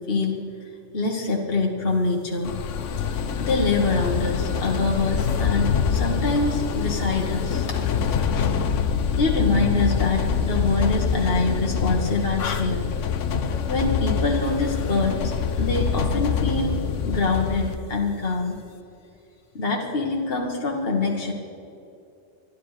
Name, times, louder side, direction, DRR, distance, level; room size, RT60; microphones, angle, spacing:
voice 1, 0.1-0.4 0.9-2.6 3.1-8.7 9.1-12.9 13.7-15.3 15.6-16.8 17.0-18.6 19.5-21.3, left 3 dB, 55° left, -1 dB, 1.8 m, -25 dB
sound 1, 2.5-17.8, left 6 dB, 85° left, 1.2 m, -25 dB
25.0 x 11.5 x 5.0 m, 2.6 s
omnidirectional pair, 1.2 m